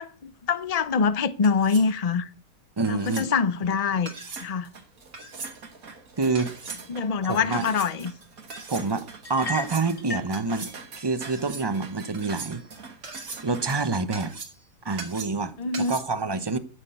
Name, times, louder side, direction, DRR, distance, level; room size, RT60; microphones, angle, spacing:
voice 1, 0.0-2.3 2.9-4.1 4.4-4.7 6.9-8.1 15.6-16.0, left 5 dB, 55° left, 0.4 m, -25 dB
sound 1, 1.4-1.9 2.8-3.3 4.1-4.5 5.1-5.5 6.3-6.8 7.5-7.9 8.5-8.9 9.5-9.9 10.3-10.8 11.2-11.7 12.1-12.7 13.0-13.5 14.1-14.6 15.0-15.4 15.7-16.0, right 4 dB, 80° right, 3.3 m, -39 dB
voice 2, 2.8-3.3 6.2-6.5 7.2-7.6 8.7-9.0 9.3-10.7 11.0-12.6 13.4-14.3 14.8-16.6, right 3 dB, 20° right, 0.7 m, -27 dB
sound 2, 4.3-14.3, right 4 dB, 60° right, 2.3 m, -45 dB
sound 3, 9.2-10.4, left 3 dB, 35° left, 1.5 m, -34 dB
12.5 x 10.0 x 8.0 m
omnidirectional pair, 1.8 m